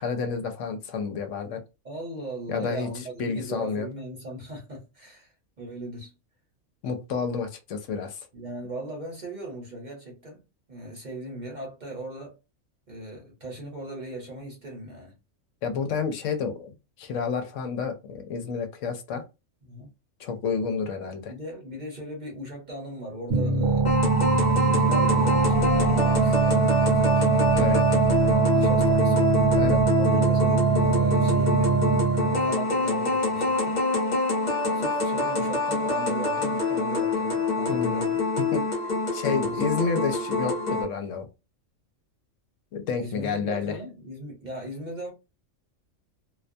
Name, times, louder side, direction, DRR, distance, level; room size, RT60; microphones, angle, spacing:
voice 1, 0.0-1.6 2.5-3.9 6.8-8.2 15.6-19.2 20.2-21.3 27.5-27.8 29.6-29.8 37.7-38.0 38.5-38.7 39.1-41.3 42.7-43.8, left 5 dB, 75° left, 0.9 m, -30 dB
voice 2, 1.8-6.1 8.3-10.4 10.7-12.3 12.9-15.1 19.7-19.9 21.2-23.9 24.3-27.2 28.5-29.3 30.0-31.9 32.1-33.8 34.7-38.2 39.2-39.9 43.0-45.1, right 1 dB, 40° right, 0.8 m, -38 dB
sound 1, 23.3-32.5, right 5 dB, 65° right, 1.0 m, -22 dB
sound 2, 23.8-40.8, left 3 dB, 40° left, 0.7 m, -26 dB
2.3 x 2.2 x 2.5 m
omnidirectional pair, 1.4 m